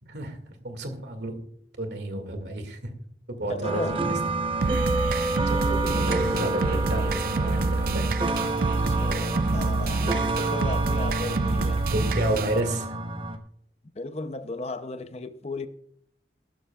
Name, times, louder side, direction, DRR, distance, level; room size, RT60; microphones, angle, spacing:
voice 1, 0.0-0.4 0.6-1.4 1.8-2.9 3.3-4.2 4.9-5.0 5.5-8.2 11.9-13.0, right 1 dB, 75° right, 2.1 m, -31 dB
voice 2, 3.5-4.1 8.6-11.8 13.9-15.7, left 2 dB, 35° left, 0.6 m, -35 dB
sound 1, 3.6-13.4, right 2 dB, 30° right, 0.9 m, -28 dB
sound 2, 4.6-12.6, right 3 dB, 55° right, 0.4 m, -27 dB
sound 3, 4.8-12.8, left 1 dB, 65° left, 1.8 m, -41 dB
15.5 x 12.5 x 2.4 m
head